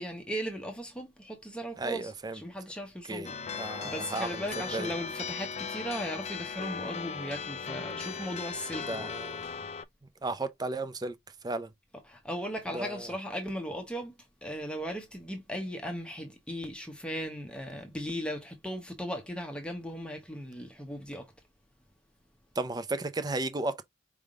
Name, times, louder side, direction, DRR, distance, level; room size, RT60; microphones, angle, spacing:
voice 1, 0.0-2.1 2.4-3.4 3.8-9.1 12.1-14.1 14.4-21.3, equal, 5° left, 0.8 m, -37 dB
voice 2, 1.8-2.4 3.1-4.5 4.7-4.9 8.7-9.5 10.2-11.1 11.4-11.7 12.7-13.1 22.6-23.8, right 2 dB, 20° right, 0.5 m, -34 dB
sound 1, 3.2-9.8, left 6 dB, 35° left, 0.3 m, -38 dB
4.8 x 3.5 x 2.4 m
head